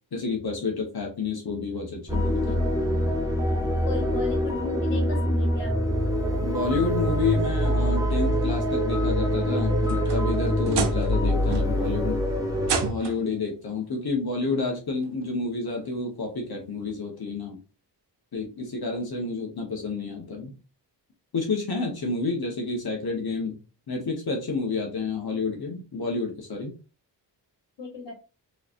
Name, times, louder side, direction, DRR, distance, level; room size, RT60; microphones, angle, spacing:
voice 1, 0.1-2.6 6.3-12.2 12.8-17.6 18.3-20.5 21.3-23.5 23.9-26.7, left 4 dB, 60° left, 1 dB, 1.3 m, -29 dB
sound 1, 2.1-12.9, equal, 10° right, 0.8 m, -25 dB
voice 2, 3.8-5.8 27.8-28.1, left 4 dB, 80° left, 2 dB, 1.6 m, -34 dB
sound 2, 9.6-11.2 11.5-12.0 12.6-13.3 14.5-14.6 15.2-15.3 16.9-17.0, right 5 dB, 70° right, 0.7 m, -31 dB
3.8 x 3.3 x 2.6 m, 0.34 s
wide cardioid pair, 95°, 42 cm